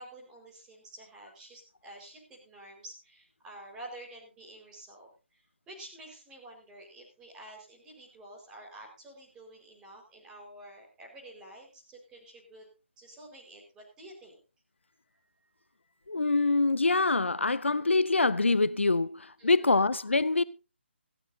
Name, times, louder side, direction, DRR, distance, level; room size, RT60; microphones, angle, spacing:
voice 1, 0.0-12.7 13.0-14.4 14.8-16.2 19.4-19.7, right 1 dB, 10° right, 4.9 m, -50 dB
voice 2, 16.1-20.4, left 3 dB, 75° left, 0.7 m, -25 dB
17.5 x 15.0 x 2.8 m
figure-of-eight pair, 145°, 7 cm